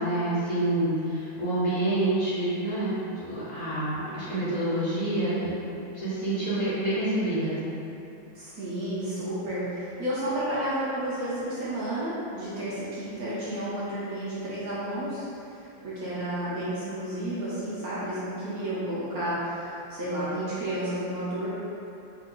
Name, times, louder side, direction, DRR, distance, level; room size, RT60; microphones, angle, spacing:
voice 1, 0.0-5.5 5.9-7.6, right 1 dB, 50° left, -11 dB, 1.2 m, -27 dB
voice 2, 8.3-21.5, right 1 dB, 60° right, -10 dB, 1.2 m, -31 dB
4.0 x 2.8 x 3.8 m, 2.8 s
omnidirectional pair, 2.1 m